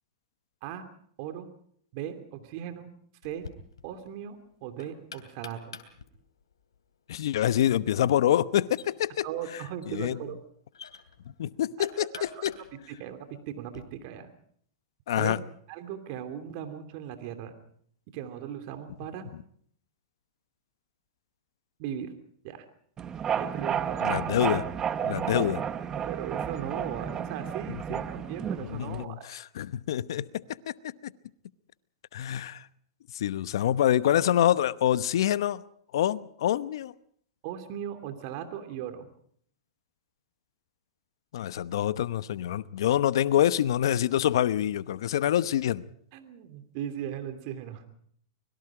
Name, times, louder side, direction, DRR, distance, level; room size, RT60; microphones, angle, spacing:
voice 1, 1.2-1.5 1.9-2.9 3.2-3.5 3.8-5.7 9.2-10.4 11.8-12.5 12.9-14.3 15.2-15.4 15.7-17.6 18.1-19.3 21.8-22.1 22.4-22.6 23.4-24.1 25.4-25.5 25.9-29.4 37.4-39.1 46.1-47.9, right 10 dB, 50° right, 2.8 m, -38 dB
Knock, 3.2-13.8, left 6 dB, 90° left, 2.9 m, -50 dB
voice 2, 7.1-9.3 9.9-10.2 11.4-12.1 12.4-12.5 15.1-15.4 24.0-24.6 25.0-25.6 28.6-30.7 32.1-32.6 33.1-35.6 35.9-36.9 41.3-45.8, left 11 dB, 70° left, 0.9 m, -26 dB
sound 1, 23.0-29.0, right 8 dB, 25° right, 0.9 m, -32 dB
25.0 x 22.0 x 4.9 m
hypercardioid pair, 120°, 2 cm